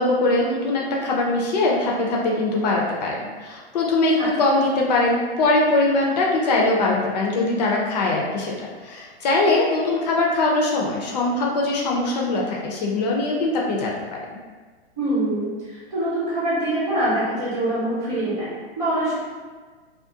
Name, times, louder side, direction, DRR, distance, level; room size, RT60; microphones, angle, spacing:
voice 1, 0.0-14.2, left 2 dB, 40° left, -2 dB, 0.4 m, -22 dB
voice 2, 15.0-19.2, right 1 dB, 15° right, -11 dB, 0.7 m, -24 dB
2.3 x 2.2 x 2.7 m, 1.4 s
hypercardioid pair, 140°, 33 cm